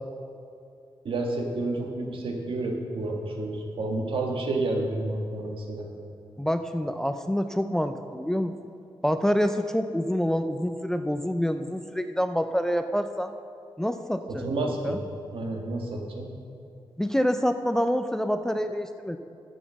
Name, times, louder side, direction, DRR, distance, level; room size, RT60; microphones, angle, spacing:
voice 1, 1.0-5.9 14.3-15.0 15.3-16.3, right 2 dB, 75° right, 1 dB, 1.6 m, -30 dB
voice 2, 6.4-8.6 9.0-13.3 13.8-15.0 17.0-19.2, equal, 5° left, 8 dB, 0.3 m, -27 dB
10.0 x 7.1 x 7.3 m, 2.5 s
wide cardioid pair, 165°, 9 cm